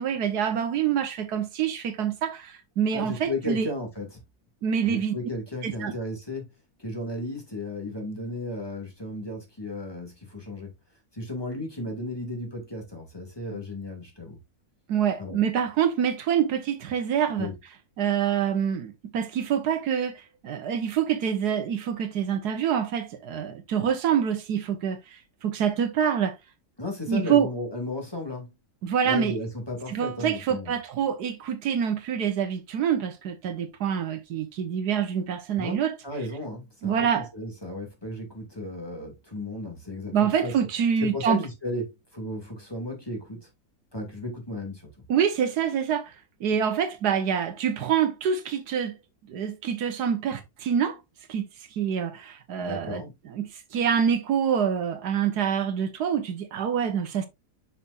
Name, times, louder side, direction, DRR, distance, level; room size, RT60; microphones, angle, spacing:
voice 1, 0.0-3.7 4.6-5.1 5.6-5.9 14.9-17.5 18.0-26.4 27.1-27.5 28.8-29.3 29.9-35.9 36.8-37.3 40.1-41.4 45.1-46.1 46.4-49.0 49.3-51.0 51.3-51.5 51.8-57.3, right 8 dB, 85° right, 1.6 m, -26 dB
voice 2, 2.9-4.2 4.8-6.5 6.8-10.7 11.1-14.4 15.2-15.4 17.4-17.5 26.8-28.5 29.0-30.7 35.6-40.5 41.0-43.5 43.9-44.9 52.6-53.1, left 2 dB, 15° left, 2.1 m, -34 dB
6.9 x 6.0 x 2.4 m
omnidirectional pair, 1.7 m